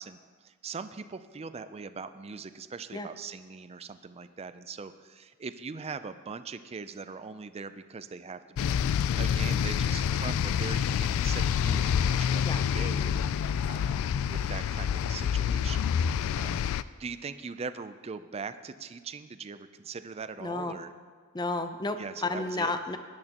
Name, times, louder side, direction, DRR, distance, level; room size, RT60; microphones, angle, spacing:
voice 1, 0.0-8.7 9.1-12.4 12.7-16.7 17.0-20.9 22.0-22.7, right 5 dB, 30° right, 11 dB, 0.4 m, -41 dB
sound 1, 8.6-16.8, left 8 dB, 65° left, 0.3 m, -27 dB
voice 2, 20.4-20.7 21.3-23.0, left 2 dB, 20° left, 9 dB, 0.6 m, -31 dB
17.0 x 11.0 x 2.9 m, 1.6 s
head